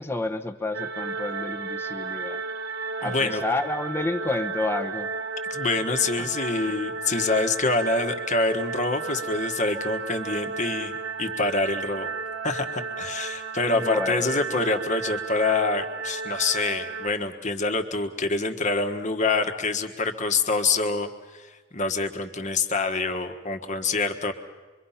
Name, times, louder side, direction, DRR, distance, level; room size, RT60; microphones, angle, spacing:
voice 1, 0.0-2.4 3.0-5.1 6.2-6.3 6.7-6.8 13.7-14.3, left 2 dB, 10° left, 7 dB, 1.0 m, -30 dB
sound 1, 0.7-17.1, right 4 dB, 55° right, 1.4 m, -33 dB
voice 2, 3.0-3.4 5.5-12.1 12.4-24.3, left 3 dB, 40° left, 7 dB, 1.4 m, -26 dB
25.5 x 23.5 x 5.8 m, 1.3 s
head